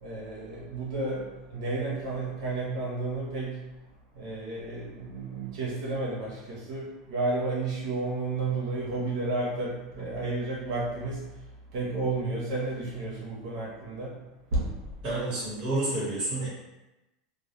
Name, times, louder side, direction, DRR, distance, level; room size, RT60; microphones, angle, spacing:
voice 1, 0.0-3.6 4.1-11.3 11.7-14.2 14.5-14.8, right 2 dB, 85° right, -6 dB, 0.8 m, -32 dB
voice 2, 15.0-16.5, right 2 dB, 35° right, -8 dB, 1.2 m, -29 dB
2.2 x 2.2 x 2.9 m, 1.0 s
supercardioid pair, 165°, 3 cm